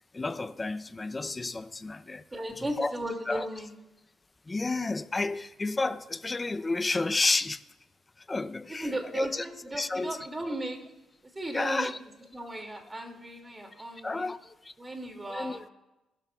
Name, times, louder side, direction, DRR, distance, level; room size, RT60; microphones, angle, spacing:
voice 1, 0.1-2.2 2.6-2.9 3.3-3.5 4.5-7.6 8.3-9.5 9.7-10.3 11.5-12.0 14.0-14.7 15.3-15.6, left 3 dB, 20° left, 0.6 m, -31 dB
voice 2, 2.3-3.7 8.7-10.8 11.3-11.9 12.3-14.3 14.8-15.7, right 1 dB, 20° right, 2.4 m, -36 dB
20.0 x 12.0 x 2.4 m
cardioid pair, 90°, 0 cm